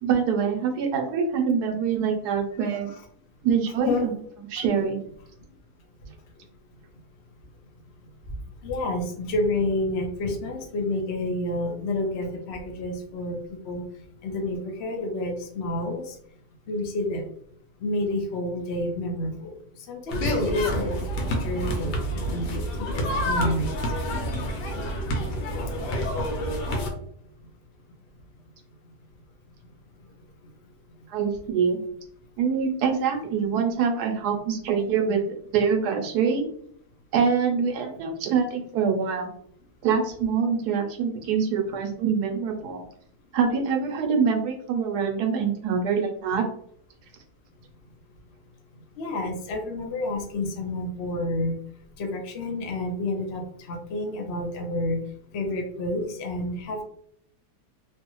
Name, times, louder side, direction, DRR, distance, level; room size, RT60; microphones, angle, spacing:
voice 1, 0.0-2.9 3.4-4.1 4.5-5.0 31.1-31.8 32.4-35.2 35.5-36.5 37.1-39.3 39.8-42.8 43.3-46.4, right 6 dB, 75° right, 3 dB, 1.2 m, -25 dB
voice 2, 8.6-13.4 13.6-13.8 14.2-16.2 16.7-17.2 17.8-19.6 19.9-23.8 49.0-51.6 52.0-53.4 53.7-55.0 55.3-56.8, left 1 dB, 55° left, 2 dB, 0.8 m, -29 dB
sound 1, 20.1-26.9, equal, 90° left, 1.3 m, -28 dB
3.1 x 2.4 x 2.9 m, 0.65 s
omnidirectional pair, 1.8 m